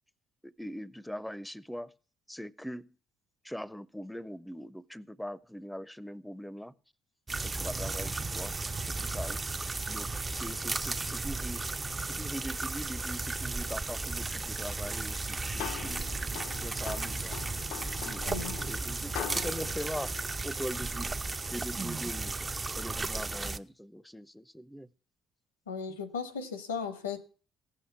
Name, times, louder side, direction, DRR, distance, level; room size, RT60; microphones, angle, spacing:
voice 1, 0.4-1.9 2.3-2.9 3.4-6.7 7.4-8.5 8.9-9.4 9.9-11.7 12.0-17.4 18.0-20.1 20.4-21.1 21.5-22.3 22.7-24.9 25.9-26.0, equal, 5° left, 0.7 m, -41 dB
sound 1, 7.3-23.6, right 3 dB, 30° right, 0.7 m, -35 dB
sound 2, 15.1-21.0, left 12 dB, 75° left, 0.6 m, -43 dB
voice 2, 18.2-18.6 25.7-27.2, left 5 dB, 90° left, 1.1 m, -36 dB
16.0 x 6.5 x 7.1 m
hypercardioid pair, 50°, 0 cm